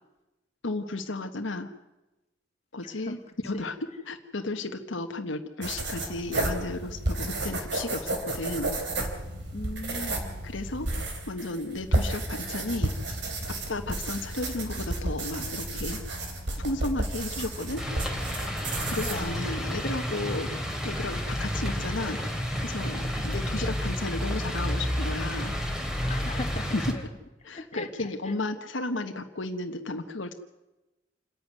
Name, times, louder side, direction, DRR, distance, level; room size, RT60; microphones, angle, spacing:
voice 1, 0.6-1.7 2.7-3.2 3.4-3.8 4.1-8.7 10.4-10.9 11.3-12.9 13.4-16.0 16.6-17.8 18.8-20.5 20.8-22.2 22.6-25.6 26.7-26.9 27.4-30.3, left 2 dB, 80° left, 5 dB, 1.3 m, -33 dB
voice 2, 2.8-3.2 3.5-3.6 9.5-10.5 19.0-19.4 26.1-27.0 27.4-28.3, left 2 dB, 35° left, 3 dB, 2.0 m, -39 dB
sound 1, 5.6-20.4, right 1 dB, 65° right, 3.6 m, -32 dB
sound 2, 17.8-26.9, equal, 5° right, 2.8 m, -31 dB
27.5 x 11.0 x 9.4 m, 1.0 s
head